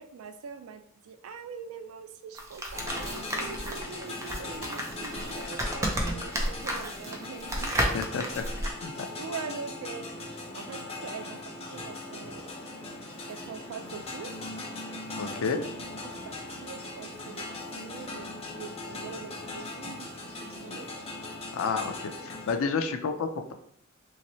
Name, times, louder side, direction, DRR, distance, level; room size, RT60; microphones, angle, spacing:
voice 1, 0.0-7.8 8.8-10.1 10.5-12.6 13.3-14.4 16.0-17.5 17.7-20.2 20.4-20.9, right 6 dB, 85° right, 9 dB, 0.4 m, -43 dB
sound 1, 2.3-8.7, equal, 15° right, 0.4 m, -32 dB
sound 2, 2.7-22.5, left 2 dB, 30° left, 0.7 m, -39 dB
voice 2, 7.9-9.1 15.2-15.6 21.5-23.5, left 5 dB, 75° left, 6 dB, 0.4 m, -31 dB
3.0 x 2.8 x 2.9 m, 0.67 s
head